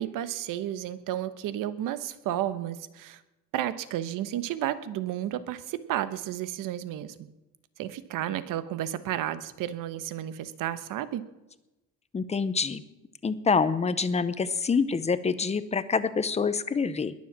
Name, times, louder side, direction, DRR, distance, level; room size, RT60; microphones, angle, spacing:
voice 1, 0.0-3.2 3.5-7.3 7.8-11.3, right 12 dB, 80° right, 13 dB, 1.1 m, -32 dB
voice 2, 12.1-12.8 13.2-17.1, left 5 dB, 20° left, 14 dB, 0.7 m, -26 dB
21.0 x 7.5 x 7.4 m, 1.0 s
cardioid pair, 145°, 32 cm